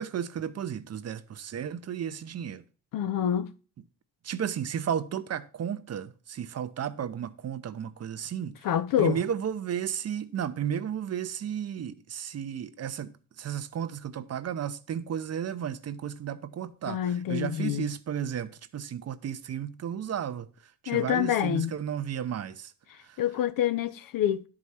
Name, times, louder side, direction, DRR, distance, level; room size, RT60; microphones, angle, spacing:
voice 1, 0.0-2.6 4.2-8.6 9.0-13.1 13.4-20.5 20.8-22.7 23.1-23.2, right 9 dB, 50° right, 0.7 m, -33 dB
voice 2, 2.9-3.5 8.6-9.2 16.9-17.9 20.9-21.7 23.2-24.4, left 10 dB, 75° left, 0.8 m, -27 dB
10.5 x 4.9 x 5.6 m
cardioid pair, 90°, 33 cm